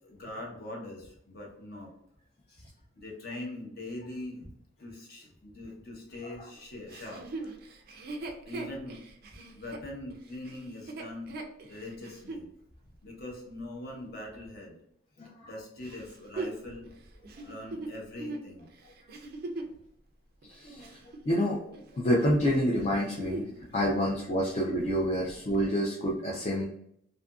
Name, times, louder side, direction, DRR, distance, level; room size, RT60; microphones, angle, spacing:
voice 1, 0.0-1.9 3.0-4.5 4.8-7.6 7.9-8.0 8.4-9.0 9.5-11.4 11.7-12.5 13.0-14.8 15.4-16.9 17.4-18.7 20.9-21.0 23.6-23.7 24.0-24.1 24.4-24.5 25.2-25.3 25.6-25.7 26.4-26.5, left 1 dB, 50° left, -1 dB, 0.8 m, -42 dB
Chuckle chortle, 6.9-12.5 13.1-13.2 15.8-19.8 20.4-21.9 22.2-22.5 22.9-23.6 23.9-24.0 24.4-24.9 25.5-25.6, right 2 dB, 50° right, 0.4 m, -40 dB
voice 2, 15.2-15.5 20.5-20.9 21.3-21.6 22.0-26.6, equal, 35° left, -4 dB, 0.4 m, -28 dB
2.7 x 2.5 x 2.3 m, 0.73 s
head